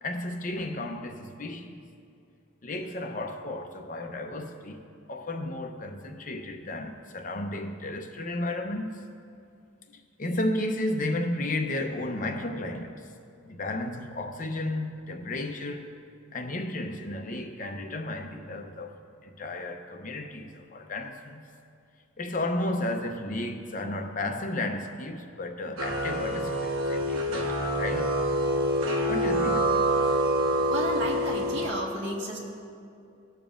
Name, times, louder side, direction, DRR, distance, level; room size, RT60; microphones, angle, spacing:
voice 1, 0.0-1.8 2.6-9.1 10.2-13.1 13.4-15.9 16.3-18.9 19.2-21.4 22.2-28.3 29.1-29.9, left 1 dB, 40° left, 0.7 m, -33 dB
sound 1, 25.8-31.7, equal, 85° right, 1.1 m, -26 dB
voice 2, 30.7-32.4, equal, 60° right, 1.4 m, -32 dB
19.0 x 7.0 x 2.5 m
head